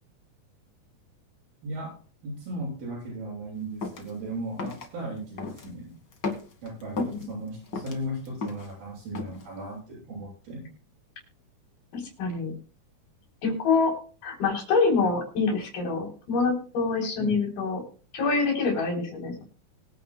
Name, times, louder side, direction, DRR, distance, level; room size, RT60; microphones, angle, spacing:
voice 1, 1.6-2.0 2.2-6.0 6.6-10.7 17.2-17.5, right 1 dB, 90° right, -6 dB, 8.6 m, -36 dB
sound 1, 3.8-4.1 4.6-4.9 5.4-5.7 6.1-7.2 7.6-8.7 9.1-9.5, left 3 dB, 40° left, 1.8 m, -34 dB
voice 2, 11.9-12.5 13.4-13.9 14.2-17.8 18.1-19.4, left 4 dB, 85° left, 0 dB, 5.6 m, -25 dB
23.5 x 9.3 x 2.3 m, 0.39 s
omnidirectional pair, 4.2 m